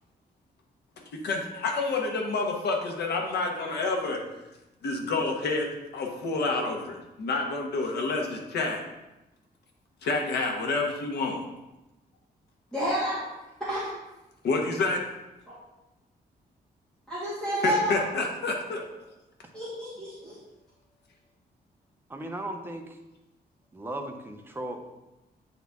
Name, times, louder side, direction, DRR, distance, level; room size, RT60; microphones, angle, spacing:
voice 1, 1.2-4.2 4.8-8.8 10.0-11.4 14.4-15.0 17.6-18.8, left 3 dB, 85° left, 2 dB, 1.1 m, -28 dB
voice 2, 12.7-13.2 13.6-13.8 17.1-18.0 19.5-20.4, right 1 dB, 5° left, -11 dB, 1.9 m, -29 dB
voice 3, 22.1-23.0 23.7-24.9, right 1 dB, 15° right, 3 dB, 0.6 m, -36 dB
8.3 x 4.0 x 3.5 m, 1.0 s
wide cardioid pair, 155°, 17 cm